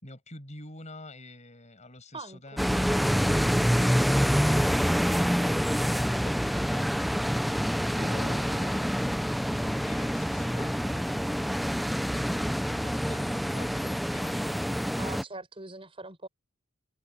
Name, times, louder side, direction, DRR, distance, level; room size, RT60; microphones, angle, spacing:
voice 1, 0.0-7.4 8.0-11.8 12.6-14.7, left 2 dB, 30° left, 7.4 m, -48 dB
voice 2, 2.1-3.4 7.9-8.4 15.0-16.3, right 2 dB, 25° right, 6.3 m, -43 dB
sound 1, 2.6-15.2, equal, ahead, 0.6 m, -26 dB
head